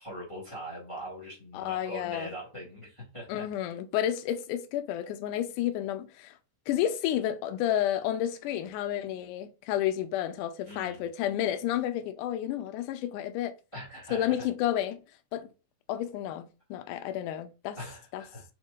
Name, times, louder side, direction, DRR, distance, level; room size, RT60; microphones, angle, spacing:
voice 1, 0.0-3.5 10.6-11.0 13.7-14.5 16.9-17.0 17.8-18.4, equal, 20° left, 0.9 m, -42 dB
voice 2, 1.5-2.3 3.3-6.4 6.7-13.5 14.1-15.0 15.3-15.5 15.9-17.8 18.1-18.2, left 11 dB, 80° left, 2.1 m, -31 dB
4.9 x 4.5 x 2.4 m
omnidirectional pair, 3.8 m